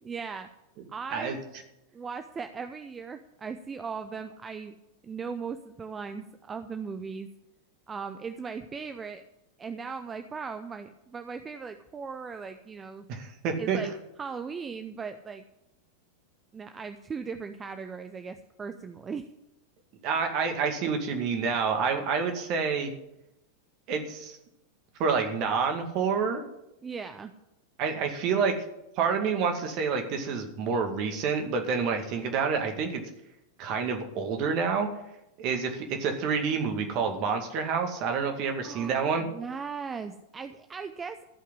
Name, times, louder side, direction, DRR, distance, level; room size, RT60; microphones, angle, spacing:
voice 1, 0.0-0.5 0.9-1.4 1.9-4.8 5.0-7.3 7.9-9.2 9.6-13.1 13.6-13.9 14.2-15.4 16.5-19.3 26.8-27.3 38.6-41.2, right 5 dB, 20° right, 9 dB, 0.7 m, -38 dB
voice 2, 13.1-13.8 20.0-22.9 23.9-24.4 25.0-26.4 27.8-28.5 29.0-33.0 33.6-34.9 35.4-39.2, right 5 dB, 40° right, 5 dB, 2.2 m, -28 dB
15.0 x 5.7 x 9.7 m, 0.87 s
figure-of-eight pair, 90°, 0 cm